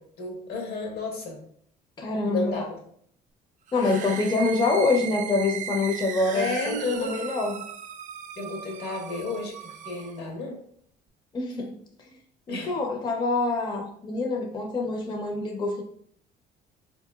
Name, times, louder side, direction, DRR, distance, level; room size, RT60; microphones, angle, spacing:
voice 1, 0.2-1.4 2.3-2.7 6.3-7.2 8.4-10.6 12.5-12.7, left 3 dB, 75° left, 1 dB, 1.1 m, -31 dB
voice 2, 2.0-2.6 3.7-7.6 11.3-11.8 12.5-15.8, left 3 dB, 25° left, 2 dB, 0.5 m, -26 dB
sound 1, 3.7-10.2, right 9 dB, 50° right, 0.4 m, -37 dB
4.1 x 2.9 x 2.2 m, 0.65 s
cardioid pair, 110°, 17 cm